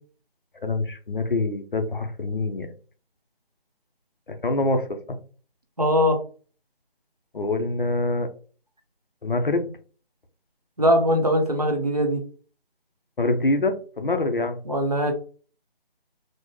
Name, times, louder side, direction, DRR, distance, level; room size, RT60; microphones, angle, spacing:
voice 1, 0.6-2.7 4.3-5.2 7.3-8.3 9.2-9.7 13.2-14.6, left 2 dB, 60° left, 7 dB, 0.7 m, -25 dB
voice 2, 5.8-6.2 10.8-12.2 14.7-15.1, equal, 40° right, 3 dB, 0.7 m, -21 dB
4.2 x 2.1 x 3.1 m, 0.39 s
figure-of-eight pair, 175°, 30 cm